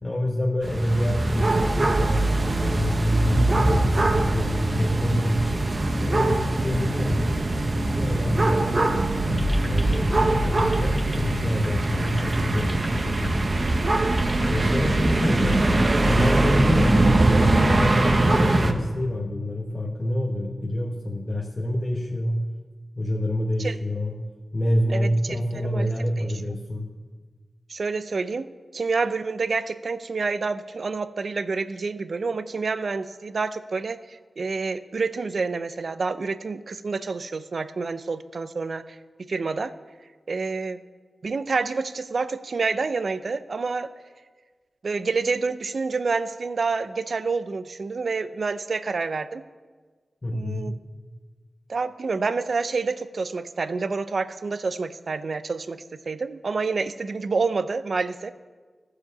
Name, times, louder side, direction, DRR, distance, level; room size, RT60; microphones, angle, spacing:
voice 1, 0.0-7.4 7.8-13.4 14.4-17.2 17.5-22.4 23.0-24.2 24.5-26.9 50.2-50.8, left 1 dB, 30° left, -1 dB, 1.2 m, -27 dB
sound 1, 0.6-18.7, right 2 dB, 45° right, 0.9 m, -22 dB
sound 2, 9.2-16.9, left 1 dB, 15° left, 1.6 m, -40 dB
voice 2, 24.9-26.2 27.7-28.5 28.7-39.0 39.3-39.7 40.3-40.8 41.2-43.9 44.8-49.4 50.3-50.7 51.7-58.3, right 4 dB, 70° right, 13 dB, 0.5 m, -28 dB
15.0 x 5.0 x 6.8 m, 1.4 s
wide cardioid pair, 65°, 0 cm